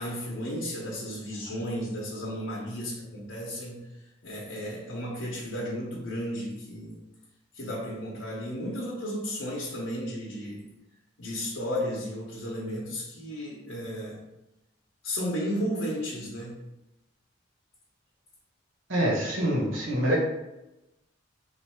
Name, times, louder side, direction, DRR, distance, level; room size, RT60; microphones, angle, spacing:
voice 1, 0.0-7.0 7.5-10.7 11.2-14.2 15.0-16.5, equal, 85° left, -4 dB, 0.9 m, -34 dB
voice 2, 18.9-20.2, equal, 85° right, -3 dB, 1.3 m, -25 dB
3.2 x 2.6 x 4.4 m, 0.94 s
head